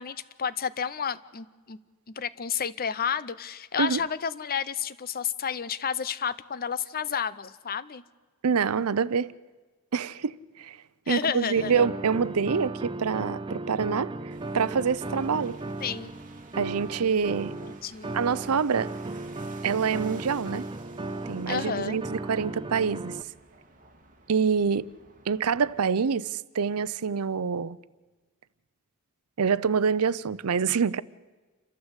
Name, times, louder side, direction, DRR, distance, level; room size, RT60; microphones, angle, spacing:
voice 1, 0.0-1.8 2.1-8.0 11.1-11.8 15.8-16.1 17.6-18.1 21.5-22.0, left 7 dB, 45° left, 0.7 m, -31 dB
voice 2, 8.4-9.3 9.9-10.8 11.1-14.1 14.5-15.6 16.6-17.5 18.1-18.9 19.6-20.7 21.3-23.2 24.3-24.9 25.3-27.8 29.4-31.0, right 6 dB, 90° right, 0.6 m, -26 dB
sound 1, 11.5-23.2, right 2 dB, 20° right, 0.6 m, -36 dB
sound 2, 14.3-25.8, right 3 dB, 40° right, 2.0 m, -53 dB
28.5 x 13.0 x 8.1 m
head